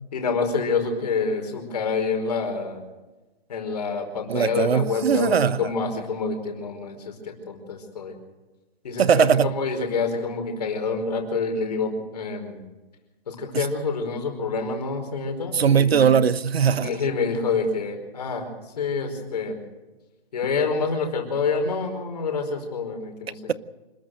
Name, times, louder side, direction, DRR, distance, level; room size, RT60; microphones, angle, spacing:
voice 1, 0.1-2.8 3.5-8.1 8.8-12.6 13.3-16.1 16.7-19.6 20.3-23.4, left 4 dB, 40° left, 5.0 m, -27 dB
voice 2, 4.3-5.7 9.0-9.5 13.5-13.7 15.5-17.0, right 7 dB, 80° right, 1.1 m, -20 dB
27.0 x 13.5 x 7.9 m
hypercardioid pair, 175°, 30 cm